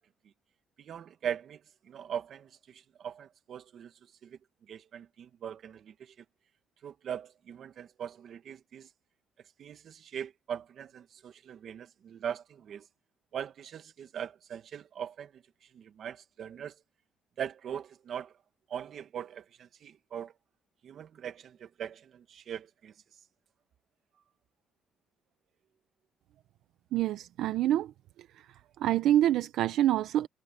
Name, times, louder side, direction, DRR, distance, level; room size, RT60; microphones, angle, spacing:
voice 1, 0.8-3.9 4.2-4.4 4.7-6.1 6.8-8.9 9.6-12.9 13.3-15.4 15.7-16.7 17.4-18.3 18.7-20.3 20.8-22.9, right 8 dB, 50° right, 1.6 m, -41 dB
voice 2, 26.9-27.9 28.3-28.5 28.8-30.3, right 12 dB, 75° right, 0.8 m, -26 dB
cardioid pair, 135°, 0 cm